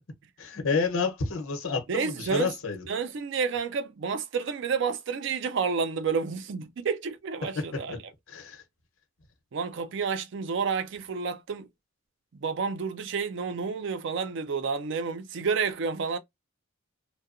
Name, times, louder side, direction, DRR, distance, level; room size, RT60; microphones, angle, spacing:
voice 1, 0.4-2.9 7.5-8.0 8.3-8.6, left 4 dB, 85° left, 0.9 m, -29 dB
voice 2, 1.9-2.5 2.9-8.0 9.5-11.7 12.4-16.2, right 5 dB, 60° right, 0.4 m, -30 dB
2.7 x 2.1 x 2.5 m
head